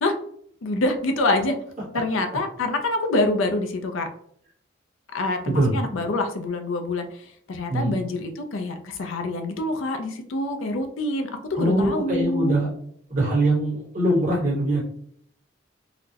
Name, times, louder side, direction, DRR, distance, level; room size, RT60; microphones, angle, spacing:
voice 1, 0.6-1.6 1.9-4.1 5.1-12.6, left 2 dB, 85° left, 6 dB, 0.5 m, -26 dB
voice 2, 11.6-12.7 13.1-14.8, right 1 dB, 40° right, -7 dB, 1.2 m, -22 dB
4.0 x 2.1 x 2.8 m, 0.66 s
head